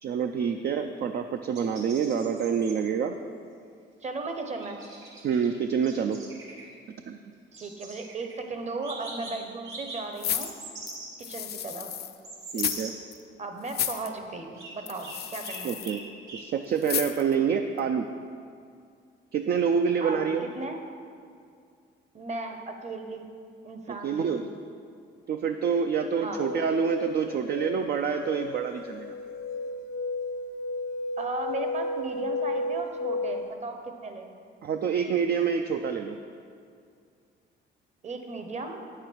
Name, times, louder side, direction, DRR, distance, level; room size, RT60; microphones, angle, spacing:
voice 1, 0.0-3.1 5.2-6.2 7.1-7.2 12.5-12.9 15.6-16.0 16.3-18.1 19.3-20.5 24.0-24.4 25.3-29.1 34.6-36.2, right 7 dB, 55° right, 6 dB, 0.4 m, -27 dB
sound 1, 1.5-2.8 4.5-5.5 5.8-6.6 7.5-8.3 8.8-9.3 9.6-10.0 10.4-11.1 11.7-11.8 12.2-12.9 14.5-14.7 15.0-15.1 15.4-16.0 16.3-16.4, right 3 dB, 75° right, 2.0 m, -42 dB
voice 2, 4.0-4.8 7.5-10.6 11.2-11.9 13.4-15.8 20.0-20.8 22.1-23.3 23.6-24.5 26.2-26.4 31.2-34.3 38.0-38.8, right 3 dB, 35° right, 5 dB, 1.0 m, -36 dB
sound 2, 10.2-12.2 12.5-12.9 13.1-13.2 13.7-14.1 14.9-16.0 16.8-17.3 17.8-17.9, left 10 dB, 55° left, 0.5 m, -32 dB
sound 3, 26.3-33.5, left 2 dB, 80° left, 0.8 m, -33 dB
8.4 x 6.7 x 4.5 m, 2.3 s
cardioid pair, 90°, 20 cm